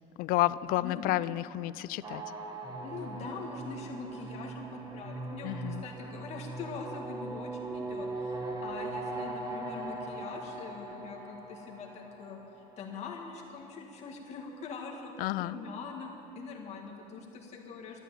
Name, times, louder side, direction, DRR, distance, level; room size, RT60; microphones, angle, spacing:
voice 1, 0.2-2.2 5.4-5.8 15.2-15.6, left 16 dB, 75° left, 18 dB, 0.4 m, -30 dB
Double horn, 2.0-13.2, right 2 dB, 25° right, 1.2 m, -40 dB
voice 2, 2.8-5.6 5.8-12.4 12.8-18.0, left 5 dB, 45° left, 0 dB, 1.8 m, -43 dB
13.0 x 9.1 x 9.7 m, 2.9 s
cardioid pair, 165°, 15 cm